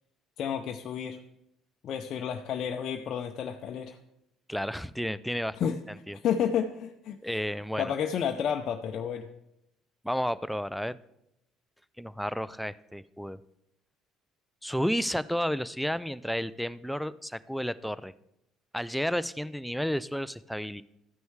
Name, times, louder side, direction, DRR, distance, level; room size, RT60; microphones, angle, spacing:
voice 1, 0.4-1.2 1.8-4.0 5.6-5.8 6.1-7.4 7.8-9.3, left 8 dB, 55° left, 3 dB, 0.6 m, -31 dB
voice 2, 4.5-5.7 6.1-6.2 7.2-7.9 10.0-11.0 12.0-13.4 14.6-18.1 18.7-20.8, equal, ahead, 16 dB, 0.4 m, -32 dB
13.5 x 9.2 x 3.2 m, 0.82 s
hypercardioid pair, 55°, 0 cm